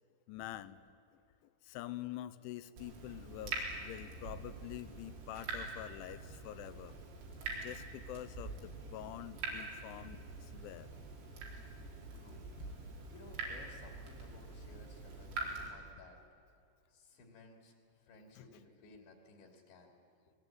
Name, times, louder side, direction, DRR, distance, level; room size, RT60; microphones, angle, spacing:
voice 1, 0.3-0.8 1.6-7.0 7.4-10.9 12.6-12.7 18.4-18.6, left 13 dB, 80° left, 14 dB, 3.0 m, -46 dB
Water tap faucet / Drip, 2.8-15.7, right 3 dB, 90° right, 6.9 m, -45 dB
voice 2, 12.1-12.5 13.1-16.2 16.9-17.7 18.0-19.9, left 3 dB, 65° left, 3 dB, 4.9 m, -58 dB
29.0 x 21.0 x 9.2 m, 2.4 s
omnidirectional pair, 5.9 m